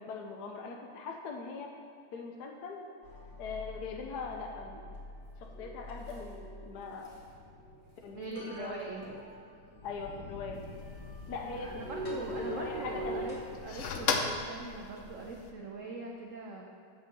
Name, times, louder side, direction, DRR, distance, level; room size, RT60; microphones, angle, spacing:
voice 1, 0.0-1.7 2.1-2.9 3.4-4.8 5.4-7.1 8.0-9.3 9.8-10.6 11.3-13.3, left 4 dB, 60° left, 1 dB, 1.2 m, -41 dB
sound 1, 3.0-13.6, equal, 30° left, 2.0 m, -44 dB
sound 2, 5.2-7.3 7.8-8.4 8.7-10.2, equal, 15° right, 1.7 m, -60 dB
voice 2, 8.1-9.0 11.5-13.4 13.6-16.6, right 3 dB, 55° right, -1 dB, 0.9 m, -42 dB
sound 3, 10.5-15.5, left 5 dB, 90° left, 0.6 m, -38 dB
7.9 x 6.6 x 6.8 m, 2.3 s
omnidirectional pair, 2.2 m